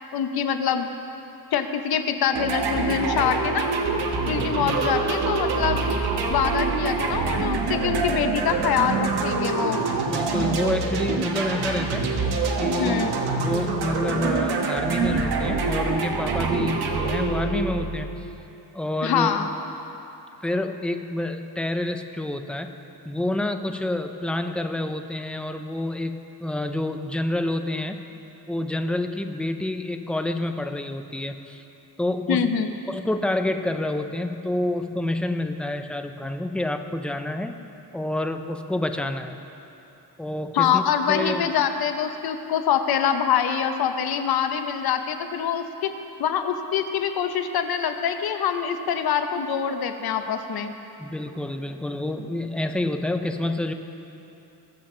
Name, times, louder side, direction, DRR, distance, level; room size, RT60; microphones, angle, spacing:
voice 1, 0.1-0.9 1.5-3.7 4.3-5.9 6.3-9.8 12.8-13.1 19.0-19.5 32.3-32.7 40.5-45.9 46.2-50.7, left 8 dB, 70° left, 7 dB, 0.8 m, -24 dB
sound 1, 2.3-18.2, right 4 dB, 75° right, 1.2 m, -25 dB
sound 2, 6.8-12.3, right 1 dB, 60° right, 2.5 m, -43 dB
voice 2, 10.0-13.1 13.4-18.1 18.7-19.4 20.4-22.7 23.1-28.0 28.5-31.6 32.0-32.5 32.9-37.6 37.9-39.4 40.2-40.8 41.1-41.5 51.0-53.7, left 1 dB, 5° left, 6 dB, 0.4 m, -28 dB
20.0 x 7.3 x 3.8 m, 2.9 s
cardioid pair, 135°, 39 cm